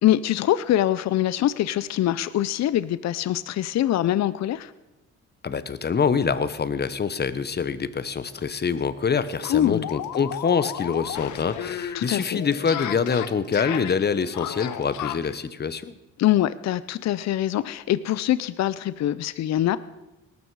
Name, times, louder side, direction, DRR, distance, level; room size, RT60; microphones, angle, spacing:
voice 1, 0.0-4.7 9.4-9.9 11.9-12.4 16.2-19.8, left 12 dB, 60° left, 16 dB, 0.6 m, -23 dB
voice 2, 5.4-15.9, left 6 dB, 35° left, 14 dB, 1.0 m, -25 dB
pissed off gamer, 8.4-8.5 8.8-8.9 9.2-15.4, left 11 dB, 80° left, 1.0 m, -34 dB
18.5 x 12.5 x 4.8 m, 0.96 s
cardioid pair, 90°, 30 cm